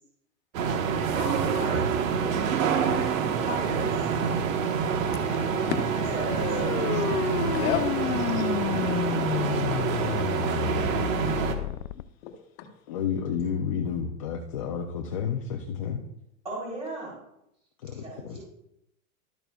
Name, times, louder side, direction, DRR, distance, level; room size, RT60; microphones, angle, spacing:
sound 1, 0.5-11.5, right 6 dB, 65° right, 1.3 m, -27 dB
voice 1, 1.2-2.1 3.4-4.1 6.1-6.8 16.4-17.2 17.9-18.4, right 1 dB, 15° right, -5 dB, 3.8 m, -37 dB
sound 2, 5.1-12.0, left 14 dB, 85° left, 0.5 m, -31 dB
voice 2, 7.5-8.5 9.2-9.3 11.4-12.3 12.6-12.7, left 10 dB, 45° left, 6 dB, 1.1 m, -35 dB
voice 3, 12.9-16.0 17.8-18.4, left 7 dB, 25° left, 2 dB, 0.3 m, -31 dB
12.5 x 8.9 x 2.3 m, 0.81 s
supercardioid pair, 165°, 43 cm